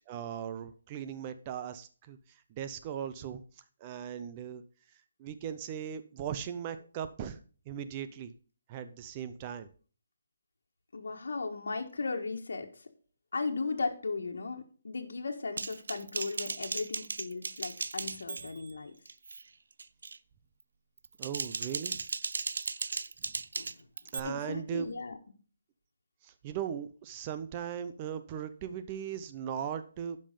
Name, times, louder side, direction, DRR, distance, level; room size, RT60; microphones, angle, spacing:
voice 1, 0.0-2.2 2.5-3.4 3.8-4.6 5.2-7.4 7.7-8.3 8.7-9.7 21.2-22.0 24.1-24.9 26.2-30.2, right 8 dB, 20° right, 11 dB, 0.5 m, -38 dB
voice 2, 10.9-12.7 13.3-18.9 23.5-23.7 24.2-25.2, left 4 dB, 75° left, 3 dB, 1.6 m, -36 dB
Typing, 15.6-18.7 19.1-19.4 19.8-20.2 21.0-24.2, right 4 dB, 75° right, 0.4 m, -37 dB
11.0 x 5.3 x 5.2 m, 0.41 s
hypercardioid pair, 170°, 0 cm